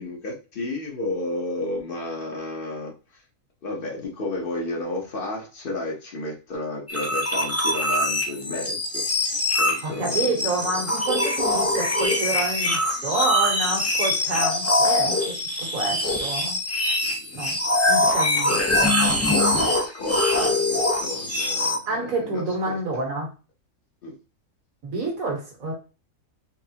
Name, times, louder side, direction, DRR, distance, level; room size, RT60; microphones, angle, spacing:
voice 1, 0.0-3.2 3.6-9.1 9.6-10.8 12.1-12.2 15.8-16.0 17.0-17.4 18.0-18.4 19.1-22.8 24.0-24.2, left 2 dB, 40° left, 0 dB, 1.0 m, -32 dB
sound 1, 6.9-21.8, left 1 dB, 15° left, 0.5 m, -23 dB
voice 2, 9.8-15.2 15.6-16.6 17.3-17.6 17.9-18.8 21.9-23.3 24.8-25.7, right 3 dB, 65° right, 0 dB, 1.7 m, -28 dB
4.2 x 3.2 x 2.8 m, 0.34 s
omnidirectional pair, 1.6 m